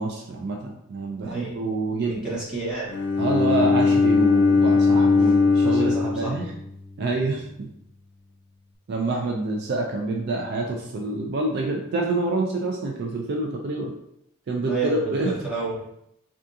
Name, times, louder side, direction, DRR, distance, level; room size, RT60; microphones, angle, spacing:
voice 1, 0.0-2.4 3.2-6.5 7.0-7.7 8.9-13.9 14.5-15.3, right 2 dB, 50° right, 0 dB, 0.4 m, -27 dB
voice 2, 1.2-1.5 2.0-2.9 5.6-6.4 14.6-15.8, right 3 dB, 5° right, -9 dB, 1.2 m, -30 dB
Bowed string instrument, 2.9-7.0, left 4 dB, 50° left, 0.4 m, -20 dB
3.5 x 2.4 x 2.7 m, 0.76 s
head